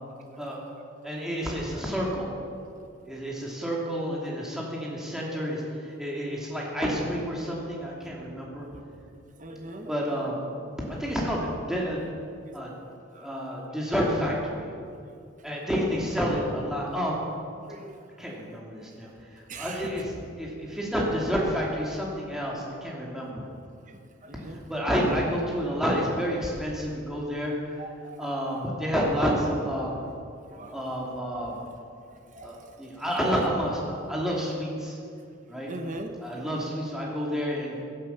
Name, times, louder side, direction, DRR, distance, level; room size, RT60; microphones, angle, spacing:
voice 1, 1.0-2.3 3.0-8.7 9.9-10.4 11.0-12.1 12.5-12.7 13.1-14.7 15.4-17.2 18.2-23.4 24.7-27.7 28.2-30.0 30.7-31.6 32.4-35.0 35.5-35.7 36.2-37.8, equal, 5° right, -4 dB, 2.6 m, -29 dB
voice 2, 9.4-9.9 13.1-13.3 17.7-18.0 19.5-19.9 24.2-24.6 27.8-28.2 30.5-30.8 32.1-32.5 35.7-36.1, right 2 dB, 40° right, 5 dB, 1.2 m, -40 dB
16.0 x 11.5 x 5.7 m, 2.4 s
head